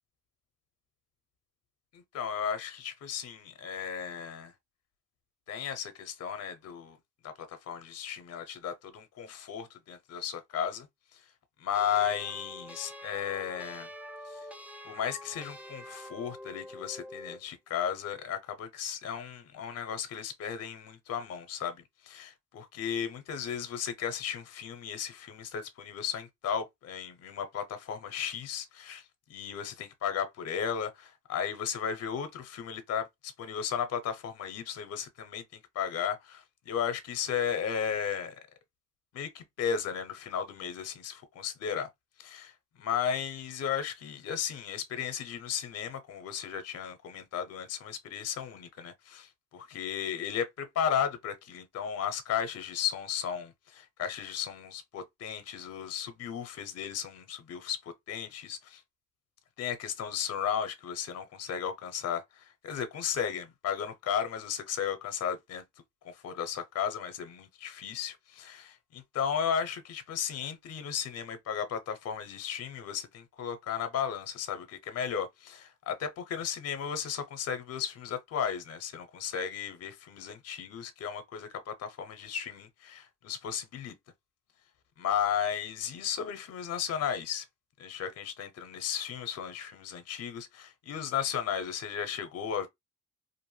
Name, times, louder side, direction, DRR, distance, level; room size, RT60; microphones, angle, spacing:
voice 1, 1.9-4.5 5.5-7.0 7.2-10.9 11.1-11.3 11.6-13.9 14.2-14.5 14.8-38.4 39.1-41.9 42.2-58.8 59.6-65.6 66.0-83.9 85.0-87.5 87.8-92.7, left 8 dB, 55° left, 0.6 m, -35 dB
sound 1, 11.7-17.5, left 1 dB, 5° right, 0.3 m, -46 dB
2.5 x 2.0 x 3.1 m
cardioid pair, 90°, 30 cm